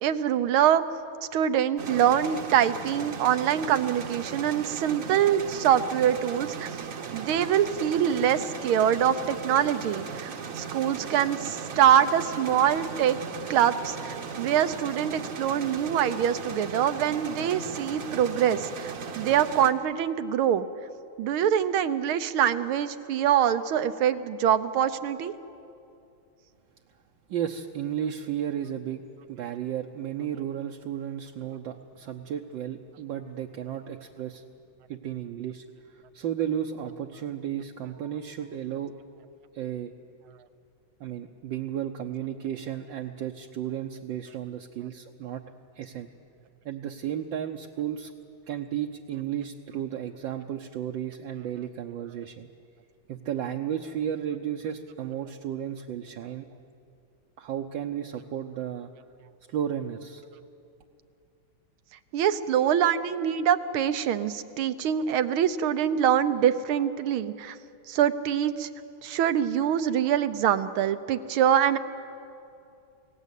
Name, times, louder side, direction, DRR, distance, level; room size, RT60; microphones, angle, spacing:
voice 1, 0.0-0.8 1.3-6.7 7.1-13.2 13.5-20.6 21.2-25.3 62.1-67.6 67.9-68.7 69.0-71.8, right 9 dB, 85° right, 11 dB, 1.7 m, -24 dB
sound 1, 1.8-19.7, right 6 dB, 50° right, 1.2 m, -37 dB
voice 2, 27.3-29.0 29.3-34.4 34.9-35.6 35.9-38.9 39.5-39.9 41.0-45.4 45.8-46.1 46.6-48.1 48.5-52.5 53.1-56.5 57.4-58.9 59.5-60.2, right 10 dB, 70° right, 2 dB, 1.5 m, -33 dB
28.5 x 17.5 x 8.3 m, 2.6 s
omnidirectional pair, 2.3 m